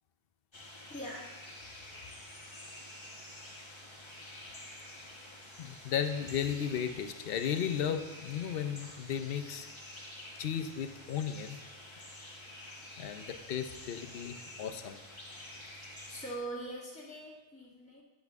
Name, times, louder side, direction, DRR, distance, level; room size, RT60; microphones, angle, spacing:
sound 1, 0.5-16.4, left 1 dB, 30° left, 1.2 m, -49 dB
voice 1, 0.9-1.3 16.1-18.0, right 1 dB, 5° left, -5 dB, 1.5 m, -42 dB
voice 2, 5.6-9.7 10.4-11.6 13.0-15.0, left 8 dB, 70° left, 8 dB, 0.8 m, -35 dB
10.5 x 7.3 x 3.6 m, 1.1 s
omnidirectional pair, 1.0 m